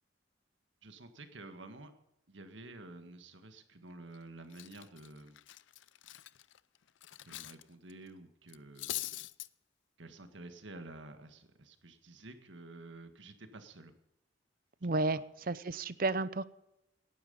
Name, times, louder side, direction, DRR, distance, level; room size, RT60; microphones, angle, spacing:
voice 1, 0.8-1.9 2.3-5.4 7.2-9.1 10.0-13.9 15.1-15.2, right 2 dB, 75° right, 8 dB, 1.8 m, -50 dB
Cutlery silverware, 3.9-4.2 4.5-7.6 7.9-8.1 8.5-9.5, left 15 dB, 80° left, 0.5 m, -43 dB
voice 2, 14.8-15.2 15.5-16.4, right 2 dB, 50° right, 16 dB, 0.7 m, -31 dB
18.0 x 10.5 x 5.5 m, 0.85 s
head